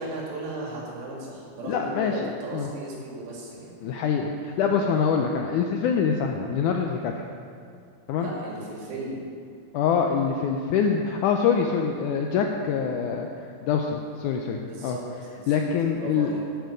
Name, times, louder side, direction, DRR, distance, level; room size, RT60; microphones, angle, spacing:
voice 1, 0.0-3.7 4.9-5.1 8.2-9.2 14.6-15.0 15.3-15.6 15.9-16.4, right 2 dB, 90° right, -3 dB, 4.1 m, -36 dB
voice 2, 1.6-2.7 3.8-7.1 8.1-8.3 9.7-15.0 15.5-16.3, left 6 dB, 85° left, 3 dB, 1.8 m, -25 dB
12.0 x 8.1 x 5.1 m, 2.3 s
omnidirectional pair, 4.2 m